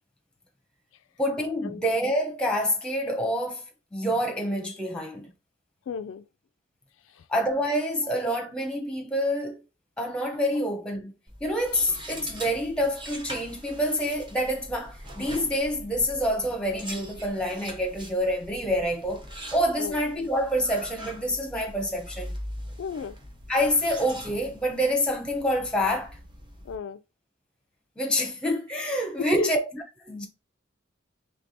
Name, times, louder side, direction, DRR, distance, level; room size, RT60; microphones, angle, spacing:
voice 1, 1.2-3.6 3.9-5.3 7.3-9.6 10.0-11.1 11.4-22.3 23.5-26.2 28.0-30.3, equal, 5° left, 0.8 m, -27 dB
voice 2, 5.9-6.2 7.0-7.3 19.8-20.0 22.8-23.2 26.6-27.0 29.2-29.5, left 6 dB, 75° left, 0.3 m, -34 dB
sound 1, 11.3-26.8, equal, 25° right, 0.9 m, -42 dB
3.3 x 3.3 x 4.1 m
head